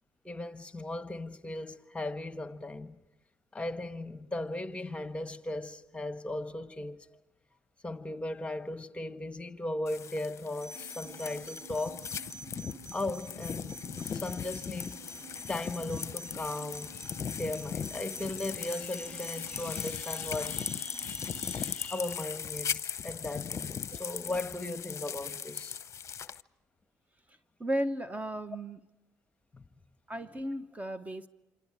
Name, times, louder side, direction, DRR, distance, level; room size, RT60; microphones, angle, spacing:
voice 1, 0.2-3.0 3.5-7.1 7.8-12.0 12.9-13.8 14.1-15.0 15.5-25.8 29.5-29.6, left 2 dB, 15° left, 1.4 m, -37 dB
sound 1, 9.9-26.4, left 7 dB, 45° left, 0.7 m, -38 dB
sound 2, 10.6-21.6, right 4 dB, 60° right, 4.3 m, -49 dB
voice 2, 27.6-28.8 30.1-31.3, right 1 dB, 20° right, 1.1 m, -35 dB
28.0 x 26.5 x 4.9 m
supercardioid pair, 65°, 7 cm